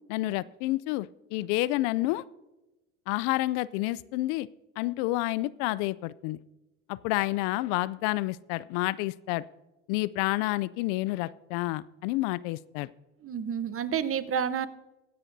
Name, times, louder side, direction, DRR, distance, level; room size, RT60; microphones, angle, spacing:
voice 1, 0.1-2.2 3.1-4.5 4.8-6.4 6.9-9.5 9.9-12.9, left 18 dB, 80° left, 20 dB, 0.5 m, -29 dB
voice 2, 13.2-14.7, right 8 dB, 35° right, 13 dB, 0.9 m, -29 dB
22.5 x 9.8 x 2.7 m, 1.0 s
supercardioid pair, 85°, 37 cm